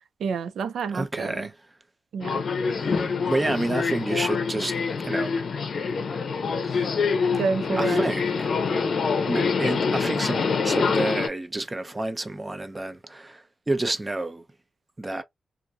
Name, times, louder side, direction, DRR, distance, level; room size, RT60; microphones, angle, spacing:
voice 1, 0.2-1.5 2.1-2.4 7.3-8.1, right 5 dB, 90° right, 0.4 m, -28 dB
voice 2, 0.9-1.5 2.6-5.4 6.6-6.8 7.8-8.5 9.3-14.4 15.0-15.2, right 2 dB, 20° right, 0.5 m, -29 dB
Subway metro underground, 2.2-11.3, left 5 dB, 60° left, 0.6 m, -25 dB
2.6 x 2.5 x 2.2 m
cardioid pair, 105°, 0 cm